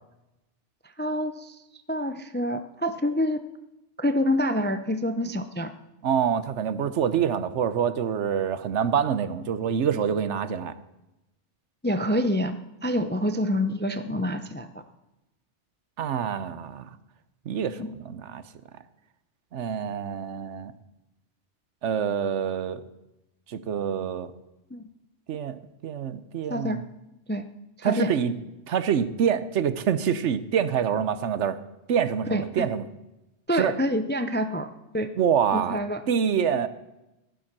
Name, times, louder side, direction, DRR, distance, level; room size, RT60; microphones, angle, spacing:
voice 1, 1.0-1.6 1.9-3.4 4.0-5.7 11.8-14.7 17.8-17.9 24.7-24.9 26.5-26.8 27.3-27.5 27.8-28.1 32.3-32.7 33.5-34.7 34.9-35.1 35.5-36.0, equal, 15° left, 9 dB, 0.4 m, -27 dB
voice 2, 6.0-10.8 16.0-16.9 17.5-18.4 19.5-20.7 21.8-22.8 23.5-24.3 25.3-26.8 27.8-28.3 28.7-31.6 31.9-32.8 33.5-33.7 35.2-35.8 36.1-36.7, right 8 dB, 75° right, 14 dB, 1.1 m, -26 dB
15.5 x 10.5 x 6.0 m, 0.97 s
omnidirectional pair, 1.2 m